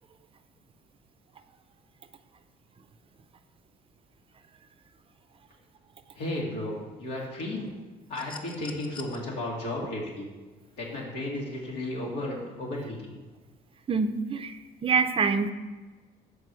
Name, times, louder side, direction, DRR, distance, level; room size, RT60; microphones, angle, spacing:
voice 1, 6.1-7.7 8.1-10.3 10.8-13.0, left 1 dB, 90° left, -3 dB, 2.2 m, -34 dB
sound 1, 8.1-9.2 10.7-10.8, left 4 dB, 30° left, 0.7 m, -44 dB
voice 2, 13.9-15.5, right 5 dB, 35° right, 9 dB, 0.5 m, -26 dB
6.6 x 5.0 x 4.7 m, 1.3 s
cardioid pair, 110°, 17 cm